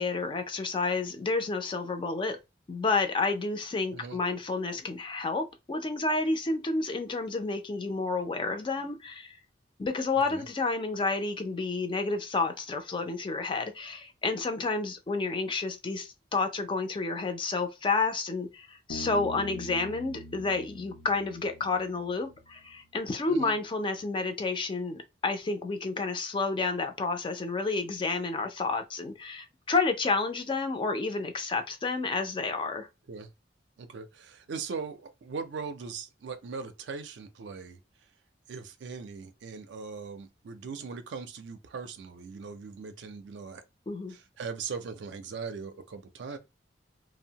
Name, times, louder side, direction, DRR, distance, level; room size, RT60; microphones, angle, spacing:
voice 1, 0.0-2.4 2.7-9.4 9.8-32.9 43.9-44.1, left 3 dB, 25° left, 0.4 m, -30 dB
Bass guitar, 18.9-22.4, left 1 dB, 90° left, 0.5 m, -43 dB
voice 2, 33.8-37.8 38.5-43.6 44.1-46.4, right 5 dB, 70° right, 0.4 m, -40 dB
2.7 x 2.0 x 2.7 m
head